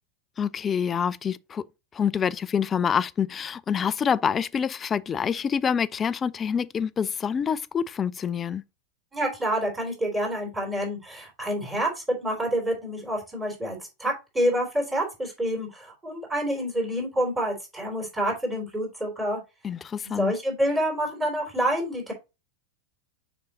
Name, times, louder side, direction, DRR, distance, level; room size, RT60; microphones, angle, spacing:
voice 1, 0.4-1.6 1.9-8.6 19.6-20.3, left 7 dB, 20° left, 0.3 m, -26 dB
voice 2, 9.1-19.4 20.0-22.1, right 1 dB, 10° right, 3.6 m, -28 dB
6.6 x 5.3 x 2.9 m
figure-of-eight pair, 90°, 0 cm